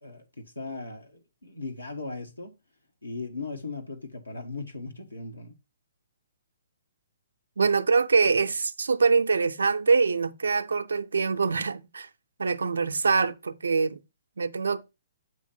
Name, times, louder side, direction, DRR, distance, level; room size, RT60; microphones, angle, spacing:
voice 1, 0.0-2.5 3.0-5.5, left 3 dB, 85° left, 1.3 m, -38 dB
voice 2, 7.6-12.1 12.4-14.0 14.4-14.8, right 4 dB, 65° right, 0.5 m, -24 dB
8.2 x 3.1 x 5.3 m
figure-of-eight pair, 125°, 0 cm